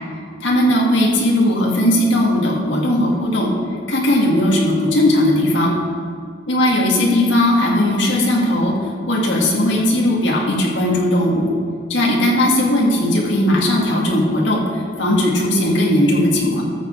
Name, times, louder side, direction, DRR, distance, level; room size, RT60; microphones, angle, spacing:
voice 1, 0.4-3.5 3.9-5.7 6.5-8.7 9.1-11.5 11.9-16.6, left 1 dB, 60° left, -2 dB, 1.9 m, -17 dB
13.5 x 6.8 x 4.5 m, 2.2 s
head